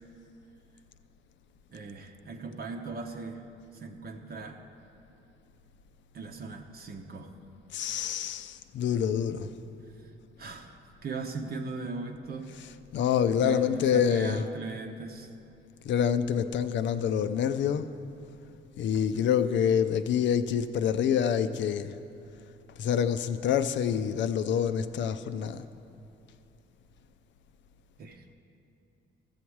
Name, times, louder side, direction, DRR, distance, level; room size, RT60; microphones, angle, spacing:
voice 1, 1.7-3.4 3.8-4.6 6.1-7.3 10.4-10.8 11.0-12.5 13.3-15.3 19.1-19.2 28.0-28.3, right 4 dB, 50° right, 3 dB, 0.8 m, -39 dB
voice 2, 7.7-9.5 12.6-14.4 15.8-17.9 18.8-21.9 22.8-25.7, left 8 dB, 70° left, 11 dB, 0.5 m, -27 dB
14.0 x 7.2 x 4.7 m, 2.6 s
cardioid pair, 90°, 20 cm